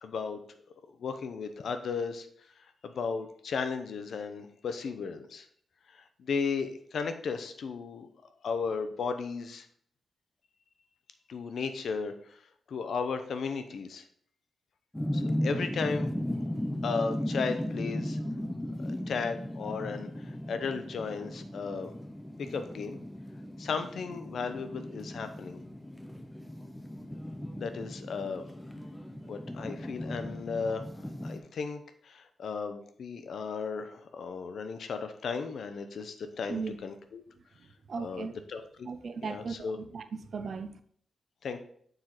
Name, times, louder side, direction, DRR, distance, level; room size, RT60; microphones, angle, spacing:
voice 1, 0.0-0.4 1.0-2.3 2.6-5.5 5.9-8.1 8.4-9.7 11.3-12.4 12.7-14.1 15.1-16.1 16.8-18.2 18.8-21.9 22.4-23.0 23.6-25.6 27.6-28.4 29.3-30.9 31.2-37.2 38.0-38.9 39.2-39.8 41.4-41.6, left 5 dB, 60° left, 8 dB, 0.6 m, -35 dB
sound 1, 14.9-31.4, left 1 dB, 5° left, 0.5 m, -36 dB
voice 2, 37.6-38.4 38.8-40.8, right 5 dB, 45° right, 10 dB, 0.5 m, -37 dB
6.5 x 4.5 x 4.0 m, 0.62 s
wide cardioid pair, 175°, 0 cm